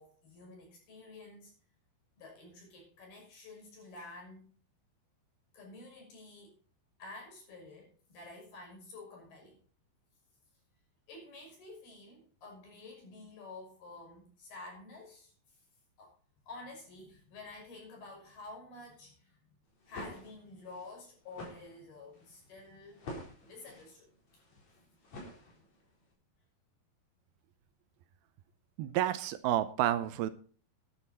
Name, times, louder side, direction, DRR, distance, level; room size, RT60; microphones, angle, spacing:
voice 1, 0.0-1.5 2.2-4.5 5.5-6.5 7.0-9.6 11.1-15.6 16.0-16.1 16.5-19.4 19.9-23.1 23.4-24.1 24.7-24.9 25.5-25.7, left 2 dB, 70° left, 0 dB, 7.9 m, -50 dB
sound 1, 19.6-25.9, left 1 dB, 45° left, 5.3 m, -49 dB
voice 2, 28.8-30.3, right 12 dB, 80° right, 13 dB, 2.4 m, -30 dB
13.0 x 11.0 x 4.2 m, 0.42 s
omnidirectional pair, 4.6 m